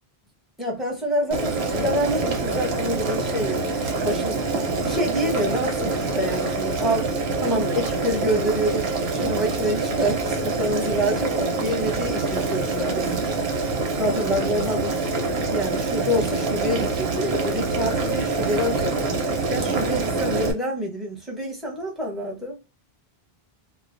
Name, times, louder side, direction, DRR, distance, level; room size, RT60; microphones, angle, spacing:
voice 1, 0.6-7.1 7.4-13.1 14.0-14.9 15.5-19.2 19.5-22.6, equal, ahead, 0.8 m, -27 dB
Boiling, 1.3-20.5, right 3 dB, 80° right, 0.9 m, -25 dB
2.3 x 2.2 x 2.4 m
omnidirectional pair, 1.0 m